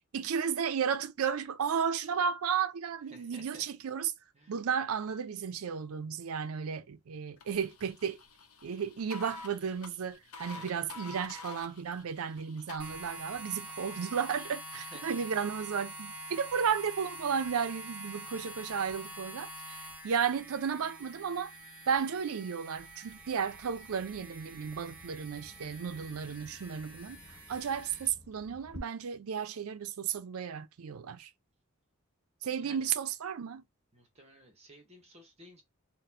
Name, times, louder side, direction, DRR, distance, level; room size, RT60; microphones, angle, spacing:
voice 1, 0.1-4.1 4.5-8.2 8.6-21.5 21.9-27.2 27.5-31.3 32.4-33.6, right 7 dB, 80° right, 0.4 m, -33 dB
voice 2, 3.1-3.6 4.3-4.5 10.5-10.8 14.7-15.2 32.5-32.9 33.9-35.6, right 1 dB, 30° right, 0.8 m, -54 dB
sound 1, 7.4-12.8, left 3 dB, 85° left, 0.7 m, -48 dB
sound 2, 12.8-28.1, right 1 dB, 5° right, 1.0 m, -46 dB
Bird vocalization bird call bird song, 23.0-28.8, left 2 dB, 30° left, 0.6 m, -55 dB
4.0 x 2.1 x 2.7 m
head